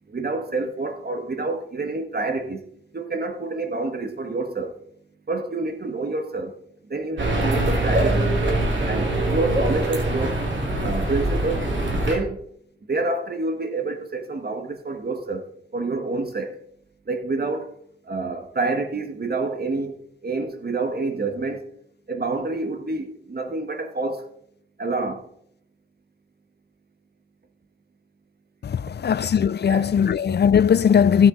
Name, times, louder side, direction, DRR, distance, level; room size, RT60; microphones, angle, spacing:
voice 1, 0.1-2.6 2.9-4.8 5.3-6.6 6.9-8.4 8.8-10.4 10.8-12.4 12.9-16.6 17.0-17.7 18.0-21.7 22.1-24.3 24.8-25.2 29.7-29.9, right 3 dB, 55° right, 1.6 m, -28 dB
sound 1, 7.2-12.2, right 2 dB, 75° right, 2.4 m, -23 dB
voice 2, 28.6-31.3, left 7 dB, 60° left, 0.4 m, -19 dB
15.0 x 6.2 x 4.0 m
cardioid pair, 55°, 20 cm